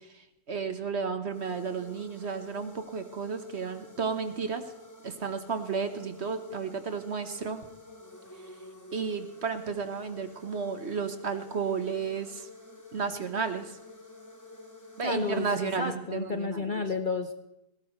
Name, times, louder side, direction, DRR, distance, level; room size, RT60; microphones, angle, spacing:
voice 1, 0.0-4.6 5.0-7.6 8.9-12.5 12.9-13.8 15.0-16.9, right 5 dB, 50° right, 9 dB, 1.4 m, -33 dB
sound 1, 1.2-16.5, left 2 dB, 10° left, 1.4 m, -50 dB
voice 2, 15.0-17.3, left 4 dB, 40° left, 7 dB, 0.8 m, -31 dB
18.5 x 16.5 x 3.2 m, 0.89 s
omnidirectional pair, 1.6 m